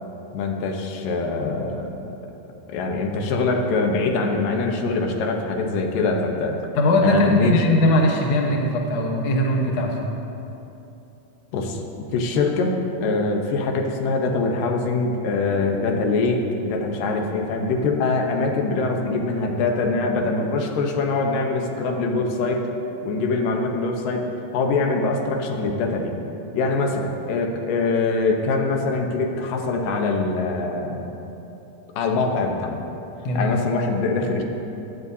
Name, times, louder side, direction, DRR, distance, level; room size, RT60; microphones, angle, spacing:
voice 1, 0.3-2.2 2.7-6.6 7.0-7.6 11.5-11.8 12.1-22.7 23.0-24.3 24.5-26.2 26.5-31.1 32.0-32.8 33.3-34.4, left 3 dB, 85° left, 2 dB, 2.6 m, -23 dB
voice 2, 6.7-10.0 33.2-33.5, left 1 dB, 65° left, 0 dB, 1.3 m, -20 dB
15.5 x 11.0 x 2.8 m, 2.9 s
omnidirectional pair, 3.8 m